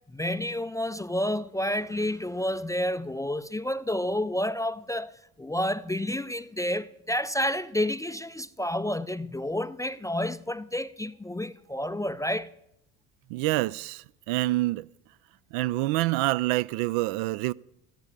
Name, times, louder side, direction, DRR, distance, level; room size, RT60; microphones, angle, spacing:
voice 1, 0.1-12.5, left 1 dB, 10° left, 0.4 m, -30 dB
voice 2, 13.3-14.9 15.5-17.5, right 18 dB, 60° right, 0.6 m, -27 dB
14.5 x 10.5 x 7.4 m
figure-of-eight pair, 55°, 45 cm